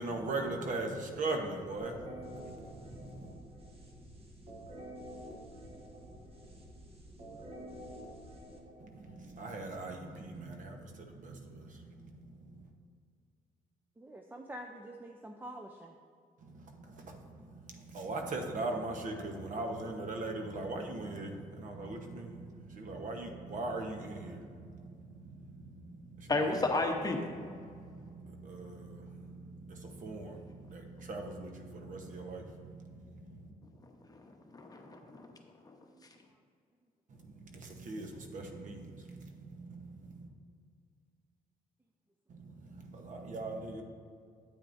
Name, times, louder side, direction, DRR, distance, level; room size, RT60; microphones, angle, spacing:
voice 1, 0.0-3.3 8.8-12.7 16.4-26.6 27.3-33.5 37.1-40.3 42.3-43.8, right 2 dB, 60° right, 3 dB, 1.0 m, -41 dB
sound 1, 1.8-9.4, equal, 40° right, 1.3 m, -49 dB
voice 2, 14.0-15.9, right 1 dB, 15° right, 3 dB, 0.5 m, -46 dB
voice 3, 26.3-27.2 34.1-35.3, left 2 dB, 25° left, 3 dB, 0.9 m, -32 dB
8.9 x 8.5 x 2.6 m, 2.2 s
cardioid pair, 95°, 15 cm